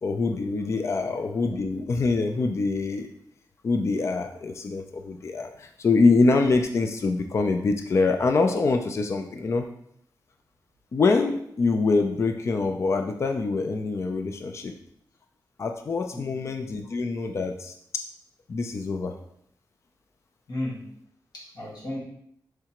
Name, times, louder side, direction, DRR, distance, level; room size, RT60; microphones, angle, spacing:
voice 1, 0.0-3.1 3.6-9.6 10.9-14.7 15.6-17.7 18.5-19.1, left 3 dB, 40° left, 5 dB, 0.4 m, -24 dB
voice 2, 0.9-1.3 16.1-16.4 20.5-20.9 21.3-22.0, left 1 dB, 60° left, -5 dB, 1.7 m, -35 dB
4.7 x 3.3 x 2.9 m, 0.70 s
wide cardioid pair, 150°, 8 cm